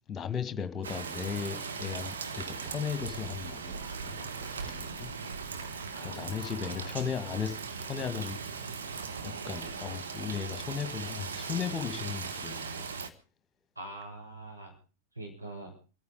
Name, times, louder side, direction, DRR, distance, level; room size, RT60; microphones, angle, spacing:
voice 1, 0.1-5.1 6.0-8.4 9.2-12.9, left 7 dB, 20° left, 1.9 m, -36 dB
Rain, 0.8-13.1, right 5 dB, 70° right, 1.7 m, -39 dB
voice 2, 5.9-6.9 13.7-14.7 15.1-15.7, right 1 dB, 85° right, 6.5 m, -44 dB
26.5 x 9.5 x 5.0 m
figure-of-eight pair, 90°, 0 cm